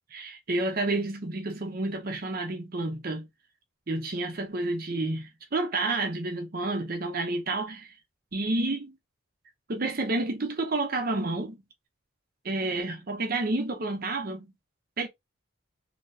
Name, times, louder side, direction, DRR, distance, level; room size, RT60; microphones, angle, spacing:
voice 1, 0.1-3.3 3.9-7.9 8.3-9.0 9.7-11.6 12.4-14.5 15.0-15.1, right 2 dB, 45° right, 0.7 m, -30 dB
3.2 x 2.8 x 2.7 m
head